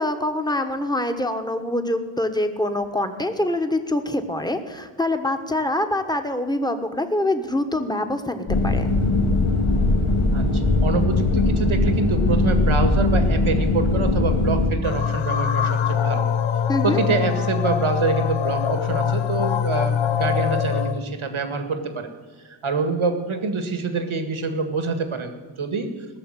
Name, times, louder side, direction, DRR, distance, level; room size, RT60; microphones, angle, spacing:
voice 1, 0.0-9.0 16.7-17.0, left 1 dB, 10° left, 6 dB, 1.2 m, -25 dB
sound 1, 8.5-14.7, left 2 dB, 80° left, 1.7 m, -20 dB
voice 2, 10.3-16.3 16.8-22.1 22.4-25.9, right 4 dB, 70° right, 7 dB, 1.9 m, -26 dB
sound 2, 14.8-21.0, left 8 dB, 65° left, 0.7 m, -23 dB
18.5 x 6.9 x 9.1 m, 1.3 s
wide cardioid pair, 95°, 49 cm